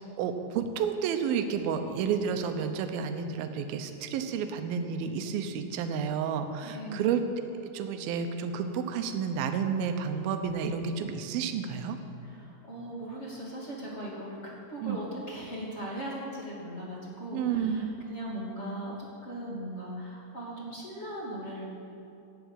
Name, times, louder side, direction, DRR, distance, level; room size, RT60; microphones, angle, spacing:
voice 1, 0.0-7.2 7.7-12.0 14.8-15.0 17.3-18.0, right 7 dB, 75° right, 7 dB, 2.3 m, -31 dB
voice 2, 6.6-7.2 12.2-18.9 19.2-21.7, right 1 dB, 25° left, -4 dB, 1.6 m, -39 dB
12.5 x 8.3 x 8.8 m, 2.8 s
omnidirectional pair, 5.0 m